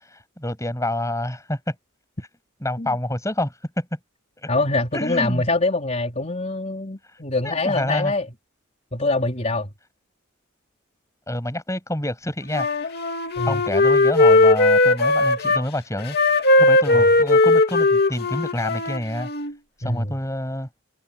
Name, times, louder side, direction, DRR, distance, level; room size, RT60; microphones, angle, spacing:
voice 1, 0.1-1.7 2.6-4.0 4.4-4.5 4.9-5.4 7.4-8.1 11.3-12.7 13.5-16.2 16.6-19.3 19.8-20.7, left 1 dB, 15° left, 8.0 m, -27 dB
voice 2, 4.5-8.3 8.9-9.7 13.4-13.6 16.9-17.1 19.8-20.1, left 2 dB, 35° left, 4.6 m, -24 dB
Wind instrument woodwind instrument, 12.5-15.6 16.1-19.5, left 2 dB, 50° left, 2.6 m, -18 dB
head